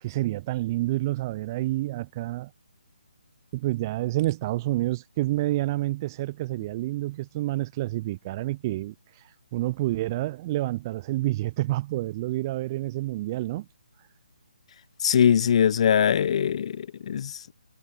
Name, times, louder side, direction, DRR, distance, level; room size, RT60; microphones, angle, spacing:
voice 1, 0.0-2.5 3.5-8.9 9.5-13.7, right 17 dB, 25° right, 0.4 m, -28 dB
voice 2, 15.0-17.5, left 8 dB, 40° left, 1.0 m, -22 dB
figure-of-eight pair, 145°, 5 cm